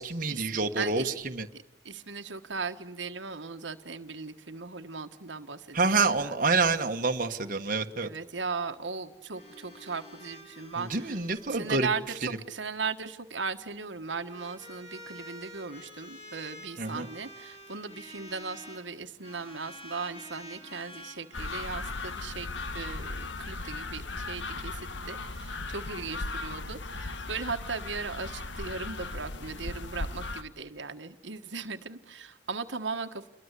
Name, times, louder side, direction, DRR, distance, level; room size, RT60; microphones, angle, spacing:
voice 1, 0.0-1.5 5.7-8.1 10.8-11.9 12.2-12.4 16.8-17.1, right 3 dB, 45° right, 4 dB, 1.4 m, -27 dB
voice 2, 0.8-1.1 1.5-6.4 8.0-11.2 11.5-22.5 22.7-24.8 25.0-33.3, right 4 dB, 85° right, 6 dB, 1.5 m, -37 dB
sound 1, 9.3-12.5 13.9-18.8 19.2-24.3, left 1 dB, 35° left, 7.8 m, -49 dB
sound 2, 21.3-30.4, left 3 dB, 80° left, 1.6 m, -37 dB
28.0 x 22.5 x 8.2 m, 0.83 s
head